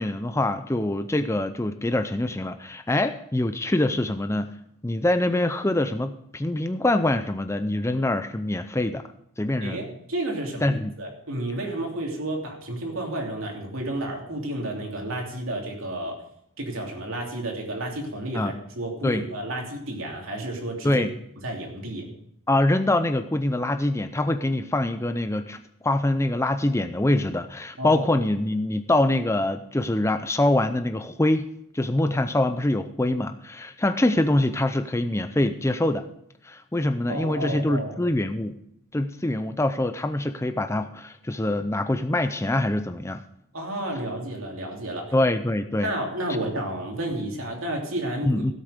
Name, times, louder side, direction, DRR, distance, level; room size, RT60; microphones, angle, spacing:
voice 1, 0.0-4.5 4.8-9.1 9.4-9.8 10.6-10.9 18.3-18.5 19.0-19.3 20.8-21.1 22.5-25.6 25.8-31.5 31.7-36.1 36.4-38.6 38.9-43.2 45.1-45.9 48.3-48.5, left 1 dB, 15° left, 9 dB, 0.5 m, -24 dB
voice 2, 9.6-16.2 16.6-21.0 21.4-22.1 27.8-28.0 37.1-38.0 43.5-45.1 45.8-48.5, right 1 dB, 75° right, 1 dB, 3.1 m, -31 dB
16.5 x 8.0 x 5.1 m, 0.72 s
head